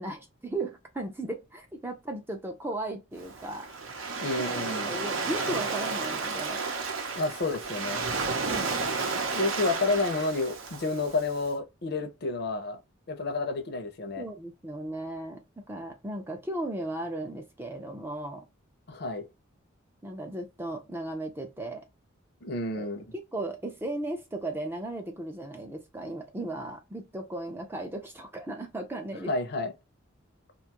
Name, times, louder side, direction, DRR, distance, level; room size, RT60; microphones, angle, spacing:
voice 1, 0.0-3.7 4.4-6.6 8.4-8.7 14.2-18.4 20.0-21.8 22.7-22.9 23.3-29.3, right 1 dB, 10° right, 0.4 m, -36 dB
Waves surf, 3.2-11.4, right 4 dB, 80° right, 0.6 m, -32 dB
voice 2, 4.2-4.9 7.1-8.0 9.3-12.8 13.1-14.2 18.9-19.3 22.4-23.1 29.3-29.7, left 2 dB, 50° left, 0.5 m, -30 dB
2.5 x 2.3 x 2.8 m
head